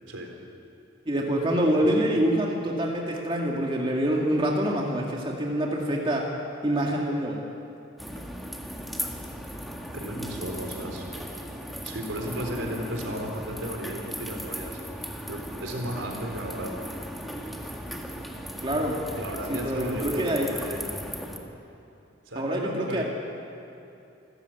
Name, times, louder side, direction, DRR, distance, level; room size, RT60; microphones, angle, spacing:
voice 1, 1.1-6.3 6.6-7.5 18.6-19.1 19.5-20.5 22.4-23.0, right 1 dB, 25° right, -1 dB, 2.1 m, -26 dB
sound 1, 8.0-21.4, equal, ahead, 1.8 m, -37 dB
voice 2, 9.9-11.1 11.8-14.8 15.3-16.7 19.2-21.0 22.3-23.0, equal, 75° right, 2 dB, 4.0 m, -35 dB
27.0 x 14.0 x 9.1 m, 2.8 s
head